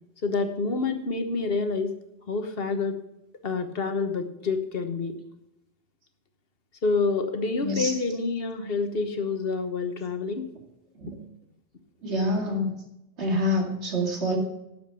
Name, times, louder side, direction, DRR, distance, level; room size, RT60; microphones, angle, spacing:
voice 1, 0.2-1.9 2.3-3.0 3.4-5.1 6.8-10.5, left 4 dB, 60° left, 7 dB, 1.4 m, -27 dB
voice 2, 7.6-7.9 11.0-11.2 12.0-12.7 13.2-14.4, left 1 dB, 80° right, 1 dB, 2.7 m, -26 dB
11.5 x 7.3 x 5.8 m, 0.90 s
omnidirectional pair, 1.1 m